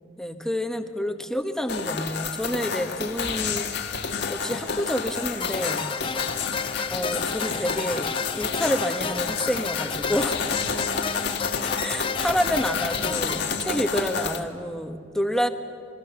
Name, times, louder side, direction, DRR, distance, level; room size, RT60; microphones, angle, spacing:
voice 1, 0.2-5.9 6.9-10.4 11.8-15.5, equal, 5° left, 6 dB, 1.2 m, -28 dB
sound 1, 1.7-14.4, left 5 dB, 65° left, 1.5 m, -30 dB
sound 2, 5.4-13.4, left 5 dB, 30° left, 0.6 m, -32 dB
27.5 x 22.0 x 7.0 m, 2.3 s
head